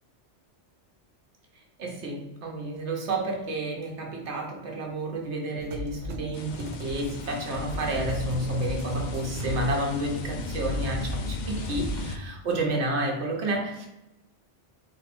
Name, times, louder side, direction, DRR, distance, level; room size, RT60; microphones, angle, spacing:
voice 1, 1.8-13.9, right 1 dB, 85° right, 0 dB, 1.2 m, -30 dB
sound 1, 5.6-10.2 10.5-12.2, equal, 50° right, 0.6 m, -38 dB
sound 2, 6.3-12.2, left 3 dB, 55° left, 0.5 m, -35 dB
4.2 x 2.9 x 4.2 m, 0.92 s
omnidirectional pair, 1.1 m